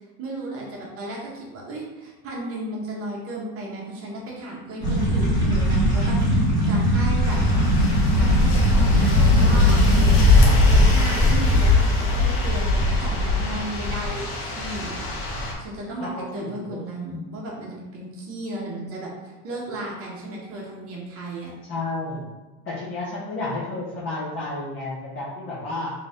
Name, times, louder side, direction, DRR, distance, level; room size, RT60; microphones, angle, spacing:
voice 1, 0.2-7.4 8.1-15.0 15.6-21.5, right 1 dB, 30° right, -3 dB, 0.8 m, -34 dB
sound 1, 4.8-10.2, right 1 dB, 10° left, 1.3 m, -21 dB
sound 2, 7.2-15.5, left 2 dB, 60° left, 1.0 m, -20 dB
voice 2, 11.1-11.5 16.0-17.2 21.7-22.3 22.6-25.9, left 2 dB, 30° left, -8 dB, 0.8 m, -32 dB
3.9 x 2.7 x 3.4 m, 1.1 s
supercardioid pair, 150°, 46 cm